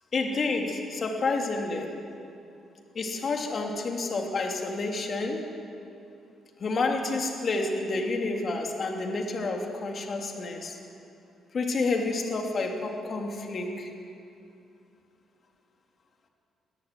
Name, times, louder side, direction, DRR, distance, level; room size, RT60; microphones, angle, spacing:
voice 1, 0.1-1.9 2.9-5.5 6.6-10.8 11.5-13.9, left 3 dB, 45° left, 2 dB, 3.0 m, -29 dB
21.5 x 14.0 x 9.5 m, 2.6 s
cardioid pair, 90°, 0 cm